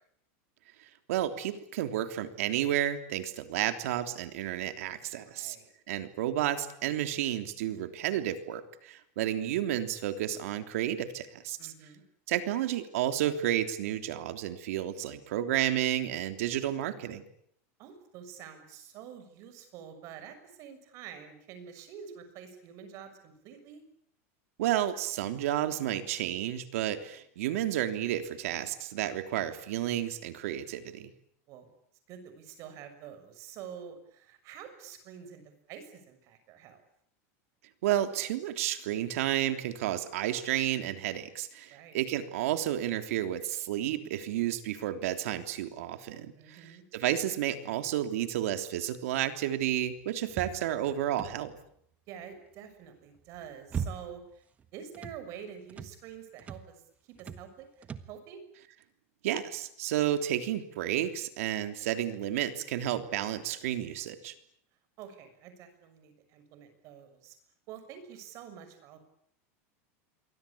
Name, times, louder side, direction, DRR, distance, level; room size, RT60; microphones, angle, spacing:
voice 1, 1.1-5.6 5.9-11.7 12.3-17.2 24.6-31.1 37.8-51.5 59.2-64.3, right 12 dB, 75° right, 9 dB, 3.3 m, -31 dB
voice 2, 5.2-5.7 11.6-12.0 17.8-23.8 31.5-31.7 32.1-36.8 41.7-42.0 46.4-46.8 52.1-54.4 54.7-56.7 57.2-57.7 58.1-58.4 65.0-67.4 67.7-69.0, right 8 dB, 40° right, 9 dB, 6.5 m, -47 dB
sound 1, 50.3-51.7 53.2-54.3 54.6-55.2 55.7-56.0 56.4-56.7 57.2-57.5 57.8-58.2, right 6 dB, 20° right, 1.4 m, -39 dB
27.5 x 23.5 x 8.7 m, 0.70 s
supercardioid pair, 160°, 8 cm